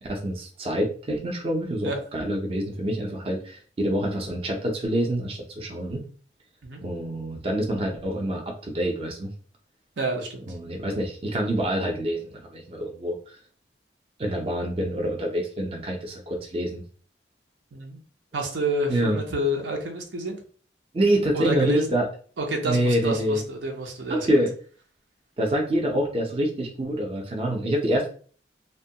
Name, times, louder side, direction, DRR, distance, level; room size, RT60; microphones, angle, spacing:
voice 1, 0.0-6.0 6.8-9.3 10.5-13.3 14.2-16.8 18.9-19.2 20.9-22.1 22.6-23.4 24.1-24.5 25.4-28.1, right 1 dB, 30° right, 1 dB, 0.5 m, -26 dB
voice 2, 10.0-10.4 17.7-18.0 18.3-20.4 21.3-21.9 22.4-24.4, right 1 dB, 85° right, 3 dB, 0.7 m, -28 dB
2.9 x 2.2 x 2.7 m, 0.42 s
head